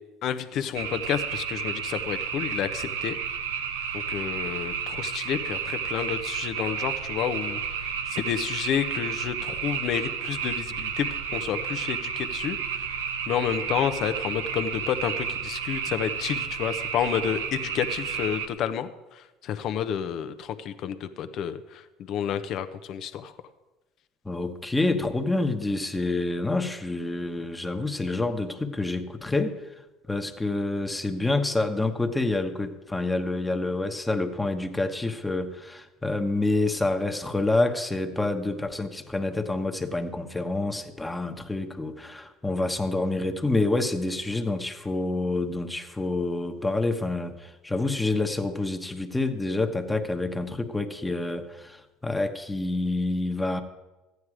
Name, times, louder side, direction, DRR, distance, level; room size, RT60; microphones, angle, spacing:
voice 1, 0.2-3.2 3.9-12.9 13.3-23.3, left 9 dB, 60° left, 11 dB, 0.8 m, -30 dB
sound 1, 0.7-18.5, right 7 dB, 90° right, 0.8 m, -32 dB
voice 2, 24.2-29.6 30.1-53.6, left 2 dB, 10° left, 6 dB, 1.2 m, -27 dB
14.0 x 9.5 x 4.9 m, 1.1 s
hypercardioid pair, 75°, 0 cm